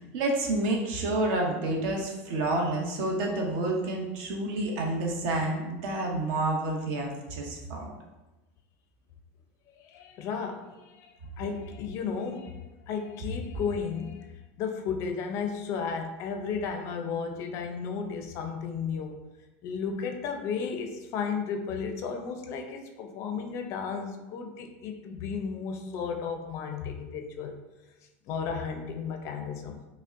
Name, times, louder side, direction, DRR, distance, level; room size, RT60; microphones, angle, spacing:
voice 1, 0.0-7.9, right 2 dB, 60° right, 1 dB, 0.8 m, -29 dB
voice 2, 9.8-19.2 19.6-27.5 28.3-29.8, left 6 dB, 45° left, 5 dB, 0.4 m, -34 dB
5.1 x 2.0 x 2.5 m, 1.1 s
supercardioid pair, 140°, 7 cm